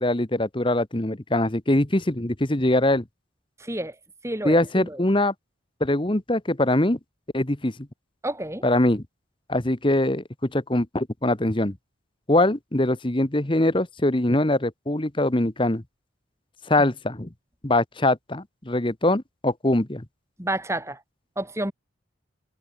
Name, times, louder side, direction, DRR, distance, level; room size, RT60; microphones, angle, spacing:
voice 1, 0.0-3.0 4.4-5.3 5.8-7.0 7.3-7.7 8.6-9.0 9.5-10.2 10.5-11.8 12.3-15.8 16.7-17.3 17.6-20.0, left 1 dB, 25° left, 1.3 m, -22 dB
voice 2, 3.6-4.0 4.2-5.0 8.2-8.7 20.4-21.0 21.4-21.7, right 1 dB, 15° right, 4.0 m, -30 dB
head